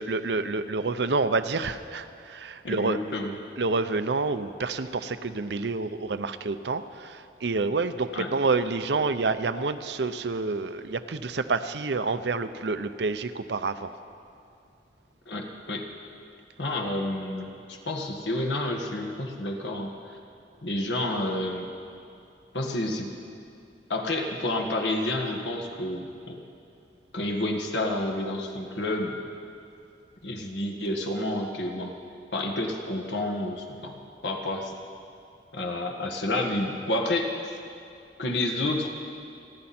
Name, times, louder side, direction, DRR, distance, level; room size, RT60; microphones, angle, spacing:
voice 1, 0.0-3.0 3.6-13.9, right 3 dB, 80° right, 11 dB, 0.7 m, -28 dB
voice 2, 2.6-3.4 8.1-8.3 15.3-15.9 16.6-20.2 20.6-21.7 22.5-23.1 23.9-26.4 27.1-29.2 30.2-31.9 32.3-34.7 35.5-37.6 38.2-38.9, left 1 dB, 90° left, 2 dB, 1.8 m, -30 dB
29.5 x 11.0 x 4.4 m, 2.6 s
head